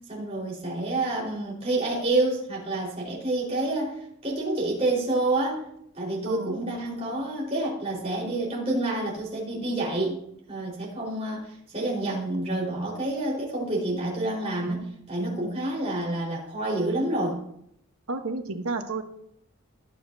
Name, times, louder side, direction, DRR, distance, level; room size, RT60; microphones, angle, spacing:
voice 1, 0.1-5.7 5.9-10.2 10.5-11.4 11.7-14.8 15.1-17.4, right 2 dB, 30° right, -4 dB, 4.3 m, -28 dB
voice 2, 6.2-6.6 18.1-19.0, right 3 dB, 80° right, 6 dB, 1.2 m, -31 dB
20.5 x 7.3 x 2.7 m, 0.73 s
head